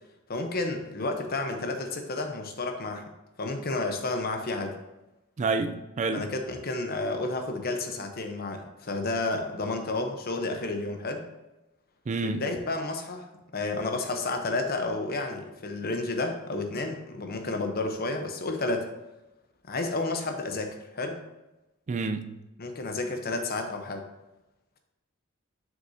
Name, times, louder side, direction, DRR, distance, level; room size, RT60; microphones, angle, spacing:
voice 1, 0.3-3.0 3.4-4.7 6.1-11.2 12.2-13.3 13.5-18.9 19.7-21.2 22.6-24.0, left 2 dB, 45° left, 0.9 m, -31 dB
voice 2, 5.4-6.3 12.1-12.4 21.9-22.4, right 3 dB, 35° right, 0.4 m, -29 dB
7.4 x 6.0 x 2.8 m
head